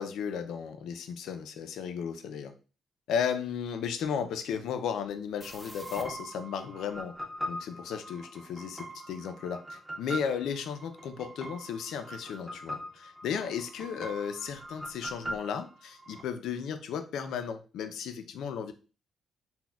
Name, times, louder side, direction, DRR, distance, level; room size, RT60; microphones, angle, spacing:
voice 1, 0.0-2.5 3.1-7.1 7.5-18.7, left 7 dB, 85° left, 8 dB, 0.4 m, -35 dB
sound 1, 5.4-16.2, equal, ahead, 0.4 m, -42 dB
4.1 x 2.1 x 2.3 m, 0.35 s
cardioid pair, 150°, 0 cm